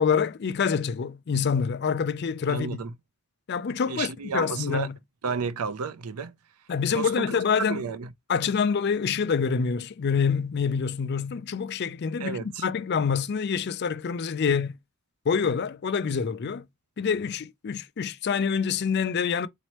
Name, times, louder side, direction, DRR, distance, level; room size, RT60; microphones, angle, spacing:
voice 1, 0.0-2.8 3.5-5.0 6.7-7.8 8.3-14.8 15.3-16.7 17.0-19.5, left 6 dB, 50° left, 0.4 m, -26 dB
voice 2, 2.5-2.9 3.9-4.9 5.2-6.3 6.9-7.4 7.7-8.1 12.2-12.6, right 5 dB, 80° right, 0.5 m, -31 dB
4.1 x 3.0 x 2.9 m
head